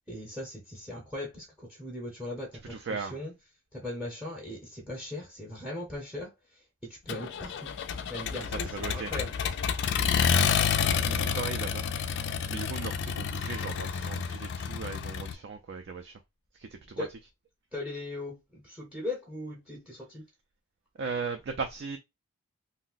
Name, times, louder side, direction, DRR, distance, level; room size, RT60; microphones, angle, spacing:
voice 1, 0.1-3.3 3.7-6.3 6.8-7.8 8.1-9.3 17.0-17.1 17.7-20.2, left 1 dB, 5° right, 0.7 m, -39 dB
voice 2, 2.7-3.2 8.4-9.1 11.0-16.2 16.5-17.1 21.0-22.0, right 4 dB, 50° right, 0.4 m, -38 dB
Accelerating revving vroom, 7.1-15.3, left 7 dB, 50° left, 0.3 m, -29 dB
2.6 x 2.1 x 3.9 m
head